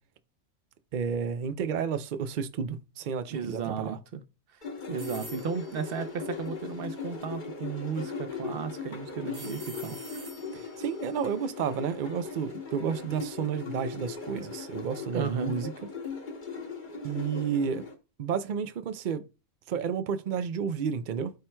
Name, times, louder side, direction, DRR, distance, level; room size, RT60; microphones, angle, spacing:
voice 1, 0.9-4.0 10.5-15.7 17.0-17.8 18.2-19.3 19.7-21.3, right 7 dB, 85° right, 0.4 m, -31 dB
voice 2, 3.3-4.2 4.9-10.0 15.1-15.5, right 6 dB, 55° right, 0.7 m, -34 dB
sound 1, 4.6-17.9, left 5 dB, 35° left, 1.1 m, -39 dB
sound 2, 5.0-7.0 9.3-12.4, right 1 dB, 30° right, 1.1 m, -49 dB
13.0 x 4.4 x 2.2 m
omnidirectional pair, 1.5 m